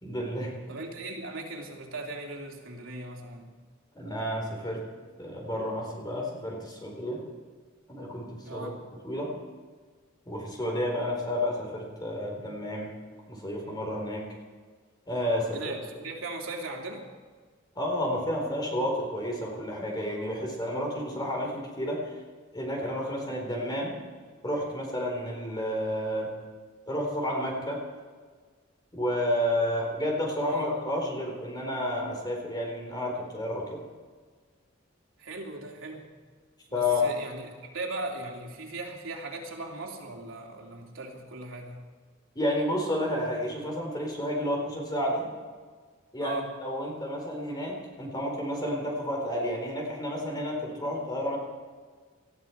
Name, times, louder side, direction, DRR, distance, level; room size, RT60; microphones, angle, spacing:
voice 1, 0.0-0.5 3.9-4.8 5.2-7.2 7.9-8.7 9.0-9.3 10.3-12.9 13.3-14.3 15.1-15.6 17.7-22.1 22.5-23.9 24.4-26.3 26.9-27.8 28.9-33.8 36.7-37.1 42.3-45.3 46.1-51.4, left 1 dB, 20° left, 0 dB, 4.3 m, -31 dB
voice 2, 0.7-3.5 8.4-8.7 15.5-17.0 30.5-30.9 35.2-36.0 36.7-41.8 46.2-46.5, right 2 dB, 85° right, 0 dB, 2.8 m, -38 dB
19.5 x 13.5 x 4.6 m, 1.5 s
head